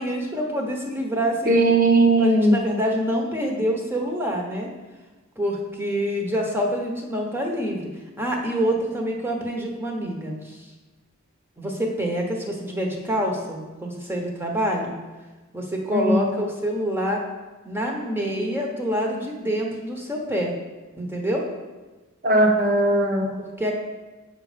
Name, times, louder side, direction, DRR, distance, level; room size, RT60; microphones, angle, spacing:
voice 1, 0.0-1.5 2.2-4.7 5.4-7.9 8.2-10.6 11.6-14.9 15.5-17.2 17.6-20.5 21.0-21.4 23.4-23.7, equal, 10° right, 0 dB, 1.1 m, -26 dB
voice 2, 1.5-2.6 15.9-16.3 22.2-23.3, right 2 dB, 40° right, 2 dB, 1.2 m, -18 dB
8.1 x 5.4 x 5.1 m, 1.2 s
head